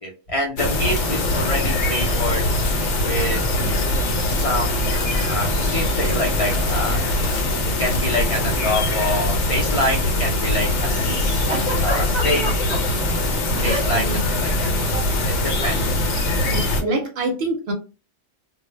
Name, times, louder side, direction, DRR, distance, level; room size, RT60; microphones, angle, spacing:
voice 1, 0.0-2.5 3.0-3.4 4.3-7.0 7.8-11.5 11.8-12.4 13.6-14.9 15.2-15.3 15.6-16.0, left 1 dB, 55° left, -2 dB, 0.3 m, -26 dB
sound 1, 0.6-16.8, left 1 dB, 70° left, 0.8 m, -22 dB
sound 2, 0.6-12.2, equal, 35° left, 0.7 m, -38 dB
Giggle, 11.5-12.8 13.6-14.1 14.4-14.6 15.5-15.8, equal, 25° right, 0.8 m, -27 dB
voice 2, 13.6-14.2 14.5-15.0 16.4-17.7, right 2 dB, 65° right, 4 dB, 0.7 m, -27 dB
2.1 x 2.0 x 3.1 m, 0.32 s
omnidirectional pair, 1.2 m